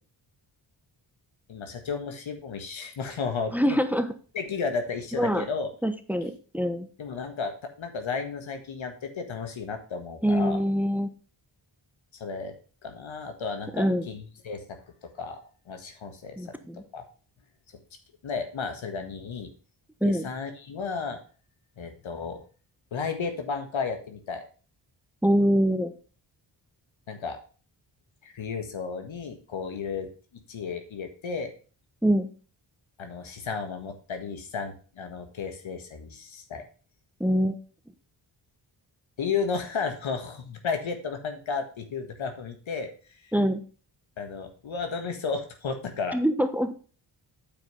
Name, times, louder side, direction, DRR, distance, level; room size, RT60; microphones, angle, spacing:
voice 1, 1.5-3.8 4.3-5.7 7.0-10.6 12.2-12.5 12.8-16.5 16.9-17.0 18.2-19.5 20.0-21.2 21.8-22.4 22.9-24.4 27.1-27.4 28.2-30.1 30.5-31.5 33.0-36.6 39.2-42.9 44.2-46.2, left 5 dB, 75° left, 6 dB, 1.7 m, -33 dB
voice 2, 3.5-4.1 5.1-5.4 5.8-6.9 10.2-11.1 13.7-14.1 16.4-16.8 20.0-20.3 25.2-25.9 32.0-32.3 37.2-37.6 43.3-43.6 46.1-46.7, equal, 5° right, 10 dB, 1.1 m, -24 dB
8.8 x 4.8 x 5.4 m, 0.38 s
cardioid pair, 50°, 48 cm